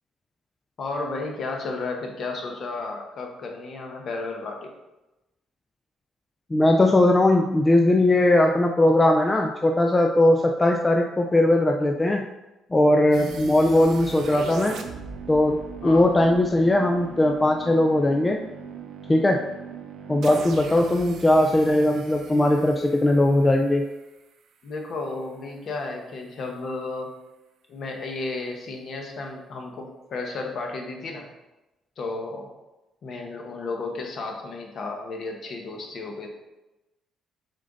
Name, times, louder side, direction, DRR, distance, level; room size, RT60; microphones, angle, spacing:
voice 1, 0.8-4.7 15.8-16.1 24.6-27.1 27.7-31.3 32.0-32.5 33.0-36.3, left 3 dB, 45° left, 2 dB, 1.1 m, -33 dB
voice 2, 6.5-12.3 12.7-14.8 15.3-18.4 19.1-19.4 20.1-23.8, left 1 dB, 15° left, 2 dB, 0.4 m, -19 dB
sound 1, 13.1-24.1, right 6 dB, 60° right, 0.6 m, -39 dB
6.5 x 3.9 x 3.9 m, 1.0 s
cardioid pair, 140°, 0 cm